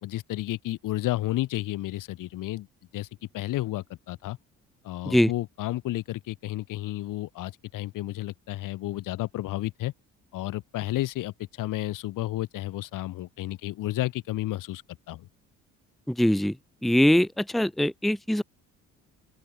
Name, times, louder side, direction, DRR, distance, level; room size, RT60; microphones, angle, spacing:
voice 1, 0.0-2.7 2.9-3.1 3.3-4.4 4.8-9.9 10.3-14.8 15.1-15.3, left 16 dB, 80° left, 2.8 m, -32 dB
voice 2, 16.1-16.5 16.8-18.4, equal, ahead, 0.8 m, -22 dB
open air
cardioid pair, 85°, 32 cm